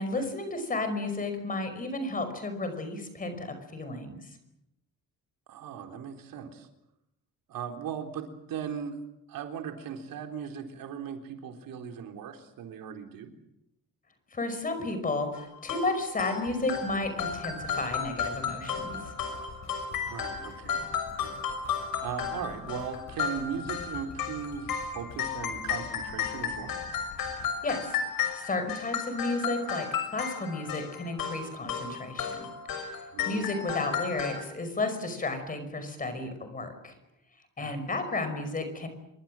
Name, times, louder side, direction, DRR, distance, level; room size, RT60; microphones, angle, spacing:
voice 1, 0.0-4.4 14.3-19.1 27.6-29.9 30.1-37.0 37.6-38.9, left 2 dB, 25° left, 8 dB, 5.4 m, -33 dB
voice 2, 5.5-6.7 7.5-8.9 9.3-13.3 20.0-21.4 22.0-26.8 33.1-33.5 37.6-37.8, right 7 dB, 80° right, 4 dB, 4.0 m, -38 dB
sound 1, 15.3-34.4, left 7 dB, 85° left, 6.3 m, -34 dB
sound 2, 16.5-28.7 29.2-29.3, left 4 dB, 55° left, 7.4 m, -49 dB
27.0 x 24.0 x 7.7 m, 0.84 s
cardioid pair, 180°, 33 cm